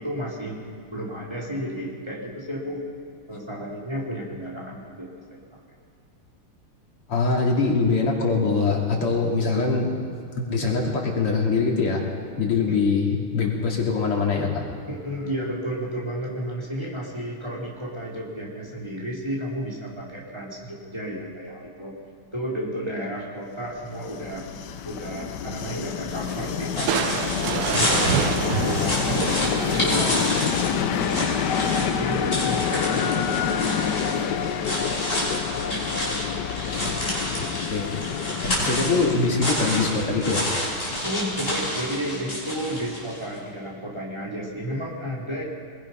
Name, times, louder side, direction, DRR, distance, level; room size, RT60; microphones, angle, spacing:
voice 1, 0.0-2.9 3.3-5.4 12.7-12.8 14.9-22.0 22.3-24.4 24.8-30.3 30.8-34.8 41.0-45.4, equal, 10° right, -3 dB, 3.6 m, -33 dB
voice 2, 7.1-9.9 10.2-12.0 12.4-14.7 36.7-36.9 37.7-37.8 38.6-40.5, left 4 dB, 85° left, -1 dB, 3.7 m, -23 dB
Train, 23.8-41.5, left 8 dB, 60° left, 1.2 m, -28 dB
sound 1, 26.1-43.3, left 1 dB, 25° left, 6.0 m, -29 dB
Crushing, 26.9-30.3, right 8 dB, 90° right, 1.8 m, -27 dB
24.0 x 21.0 x 5.8 m, 2.3 s
omnidirectional pair, 2.4 m